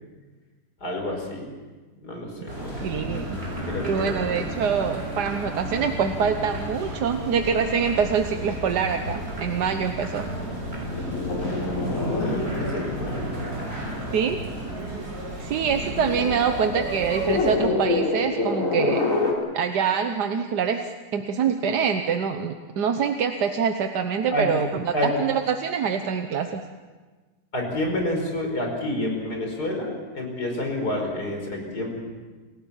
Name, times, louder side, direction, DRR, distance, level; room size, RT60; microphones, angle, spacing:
voice 1, 0.8-1.5 2.0-2.9 3.3-4.3 12.1-13.5 14.0-14.4 24.3-25.1 27.5-32.0, left 1 dB, 75° left, 2 dB, 5.6 m, -29 dB
sound 1, 2.5-17.6, right 1 dB, 40° right, 6.4 m, -33 dB
voice 2, 2.8-3.4 3.8-10.3 14.1-14.4 15.4-19.0 19.5-20.8 21.1-26.6, right 6 dB, 90° right, 6 dB, 1.6 m, -25 dB
sound 2, 8.7-14.6 15.6-19.3, left 2 dB, 50° left, 4.1 m, -28 dB
29.0 x 16.5 x 7.2 m, 1.3 s
omnidirectional pair, 1.7 m